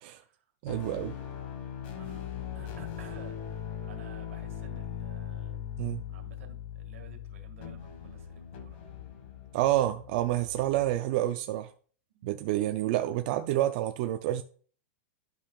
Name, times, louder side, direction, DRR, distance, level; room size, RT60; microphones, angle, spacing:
voice 1, 0.6-1.1 5.8-6.0 9.5-11.7 12.2-14.4, right 14 dB, 40° right, 0.4 m, -28 dB
sound 1, 0.7-10.9, left 9 dB, 55° left, 1.4 m, -40 dB
voice 2, 2.0-3.4 3.8-5.6 6.1-8.8 12.1-12.3, right 6 dB, 80° right, 1.7 m, -52 dB
11.5 x 5.4 x 2.3 m
supercardioid pair, 165°, 7 cm